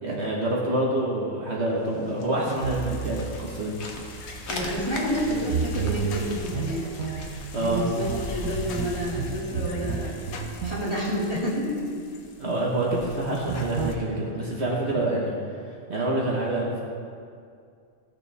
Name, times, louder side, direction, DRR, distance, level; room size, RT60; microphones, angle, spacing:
voice 1, 0.0-3.7 7.5-7.8 12.4-15.3 15.9-16.8, right 1 dB, 50° right, -4 dB, 1.5 m, -27 dB
sound 1, 1.7-10.0, left 3 dB, 55° left, 1.3 m, -42 dB
sound 2, 2.4-14.0, left 4 dB, 85° left, 1.3 m, -43 dB
sound 3, 2.6-12.0 13.5-13.9, right 6 dB, 80° right, 1.2 m, -33 dB
voice 2, 4.5-6.9 7.6-10.2 10.6-11.9, equal, 20° left, -7 dB, 2.6 m, -29 dB
16.0 x 6.9 x 3.4 m, 2.3 s
omnidirectional pair, 1.5 m